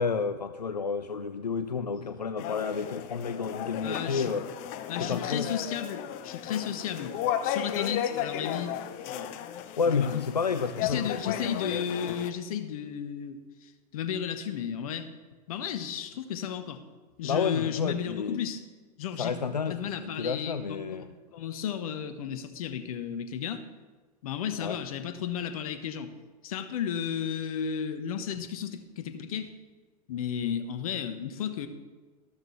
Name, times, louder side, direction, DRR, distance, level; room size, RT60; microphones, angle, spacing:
voice 1, 0.0-4.5 5.0-5.5 9.8-11.7 17.2-18.4 19.2-21.1 24.6-24.8, left 5 dB, 90° left, 11 dB, 0.4 m, -30 dB
sound 1, 2.4-12.3, left 10 dB, 45° left, 0.7 m, -34 dB
voice 2, 3.8-4.3 4.9-7.2 7.4-8.8 9.0-9.4 9.8-10.2 10.8-15.1 15.5-16.8 17.2-18.6 19.0-19.3 19.7-20.9 21.3-23.6 24.2-26.1 26.4-29.5 30.1-31.7, left 8 dB, 60° left, 10 dB, 1.1 m, -33 dB
12.5 x 12.5 x 3.2 m, 1.4 s
figure-of-eight pair, 85°, 20 cm